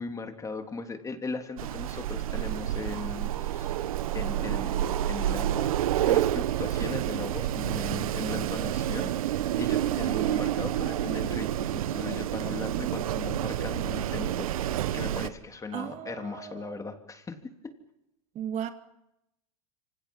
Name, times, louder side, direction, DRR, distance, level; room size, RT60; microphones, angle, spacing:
voice 1, 0.0-3.8 4.1-5.7 6.0-17.4 17.6-17.7, left 4 dB, 20° left, 5 dB, 3.4 m, -38 dB
Wind, 1.6-15.3, right 12 dB, 80° right, 1.3 m, -29 dB
voice 2, 15.7-16.8 18.3-18.7, right 9 dB, 40° right, 7 dB, 2.2 m, -36 dB
27.0 x 25.5 x 5.6 m, 0.87 s
hypercardioid pair, 100°, 18 cm